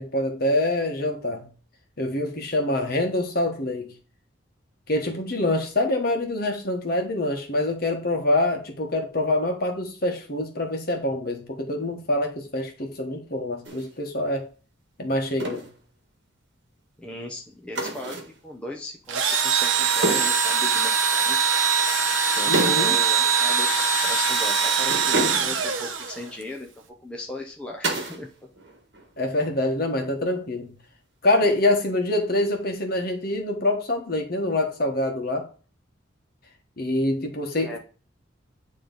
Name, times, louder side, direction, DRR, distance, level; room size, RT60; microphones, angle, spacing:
voice 1, 0.0-1.5 2.0-3.9 4.9-14.5 15.0-15.7 22.5-23.0 29.2-30.8 31.2-35.5 36.8-37.8, left 1 dB, 45° left, 1.3 m, -25 dB
sound 1, 13.6-13.9 15.4-15.7 17.7-18.4 20.0-20.4 22.5-23.0 23.2-23.4 24.9-25.7 27.8-28.3 28.5-29.1 31.4-31.9, right 2 dB, 55° right, 1.6 m, -29 dB
voice 2, 17.0-18.2 18.4-21.5 22.3-23.7 24.0-26.7 27.0-28.3 37.6-37.8, left 1 dB, 5° left, 0.8 m, -37 dB
Engine / Drill, 19.1-26.4, right 6 dB, 70° right, 0.9 m, -22 dB
9.2 x 3.2 x 3.9 m
head